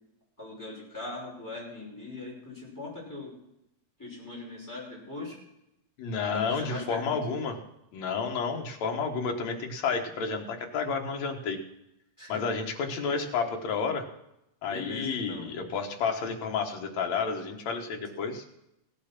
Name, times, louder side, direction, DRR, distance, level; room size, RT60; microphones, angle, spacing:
voice 1, 0.4-3.3 4.0-5.4 6.3-7.2 12.2-12.5 14.6-15.5, left 2 dB, 5° left, -5 dB, 5.5 m, -40 dB
voice 2, 6.0-7.6 7.9-11.6 12.3-14.1 14.6-18.5, left 5 dB, 65° left, 3 dB, 2.6 m, -31 dB
17.0 x 8.6 x 6.0 m, 0.84 s
omnidirectional pair, 3.5 m